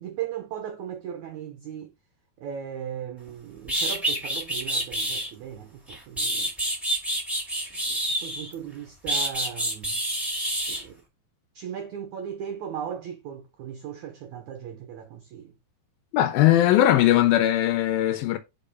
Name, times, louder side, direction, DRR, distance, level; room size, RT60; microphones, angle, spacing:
voice 1, 0.0-1.9 2.4-6.5 8.2-10.0 10.7-11.0 11.6-15.5, right 9 dB, 80° right, 1.7 m, -37 dB
sound 1, 3.3-3.4 3.7-5.3 5.9-8.5 9.1-10.8, right 1 dB, ahead, 1.9 m, -27 dB
voice 2, 16.1-18.4, left 13 dB, 75° left, 2.4 m, -19 dB
5.3 x 5.2 x 5.3 m
omnidirectional pair, 4.5 m